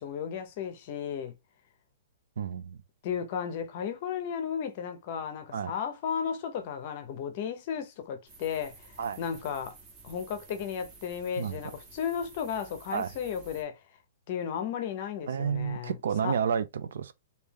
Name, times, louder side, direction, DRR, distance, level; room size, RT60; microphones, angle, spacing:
voice 1, 0.0-1.3 3.0-9.8 10.0-13.8 14.3-15.9 16.2-16.3, left 8 dB, 30° left, 0.7 m, -34 dB
voice 2, 2.4-2.8 5.5-5.7 9.0-9.2 11.4-11.8 12.9-13.1 15.3-17.1, right 7 dB, 65° right, 0.5 m, -31 dB
sound 1, 8.3-13.6, right 3 dB, 15° right, 0.8 m, -52 dB
3.1 x 2.7 x 3.5 m
hypercardioid pair, 180°, 0 cm